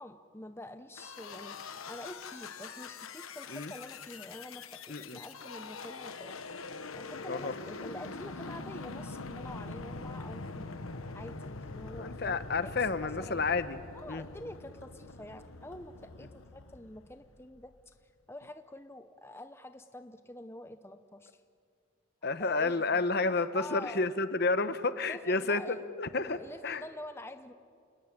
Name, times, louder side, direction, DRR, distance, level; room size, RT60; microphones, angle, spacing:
voice 1, 0.0-1.6 1.8-6.3 7.0-12.7 13.0-13.4 13.9-17.9 18.3-21.4 22.4-24.0 25.1-25.8 26.2-27.5, left 1 dB, 10° left, 8 dB, 0.7 m, -47 dB
sound 1, 1.0-17.6, left 3 dB, 90° left, 1.2 m, -44 dB
voice 2, 4.9-5.2 7.3-7.5 12.0-13.8 14.1-14.2 22.2-26.8, left 3 dB, 50° left, 12 dB, 1.0 m, -31 dB
28.5 x 19.5 x 8.9 m, 2.3 s
head